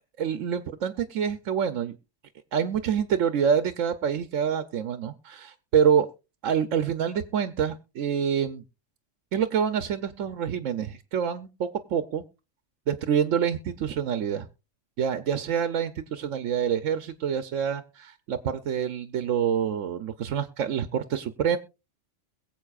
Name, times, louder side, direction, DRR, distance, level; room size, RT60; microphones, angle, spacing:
voice 1, 0.2-2.0 2.5-6.1 6.4-8.6 9.3-12.2 12.9-14.5 15.0-21.6, right 8 dB, 80° right, 10 dB, 1.1 m, -26 dB
22.0 x 7.8 x 2.4 m, 0.28 s
omnidirectional pair, 1.3 m